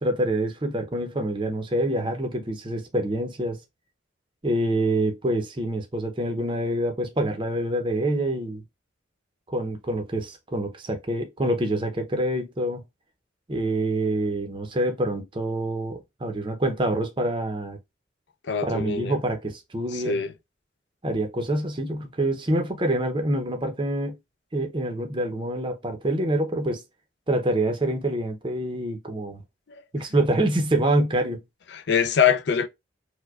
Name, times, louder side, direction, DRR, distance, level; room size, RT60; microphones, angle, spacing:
voice 1, 0.0-3.6 4.4-8.6 9.5-12.8 13.5-17.8 18.6-20.2 21.0-24.2 24.5-26.8 27.3-29.4 29.9-31.4, right 1 dB, 25° right, 0.6 m, -26 dB
voice 2, 18.4-19.2 19.9-20.3 29.7-29.8 31.7-32.7, left 7 dB, 60° left, 0.4 m, -23 dB
4.6 x 2.1 x 2.3 m
head